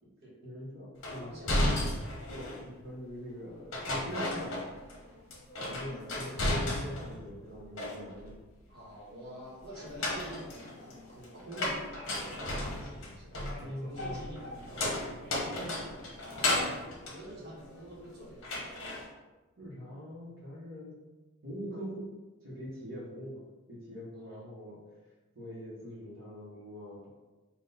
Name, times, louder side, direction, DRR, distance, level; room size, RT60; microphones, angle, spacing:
voice 1, 0.4-1.9 2.3-4.6 5.6-8.4 13.6-14.2 19.6-21.0 21.4-22.1 22.4-24.8 25.3-27.1, equal, 65° right, -8 dB, 0.9 m, -43 dB
sound 1, 1.0-2.7 3.7-5.0 5.3-7.2 7.5-8.3 9.7-18.0 18.4-19.0, left 1 dB, 60° left, 0.9 m, -34 dB
voice 2, 1.2-1.5 5.6-6.0 8.7-18.5 24.1-24.4, equal, 50° right, -5 dB, 1.2 m, -47 dB
3.8 x 2.3 x 3.9 m, 1.2 s
head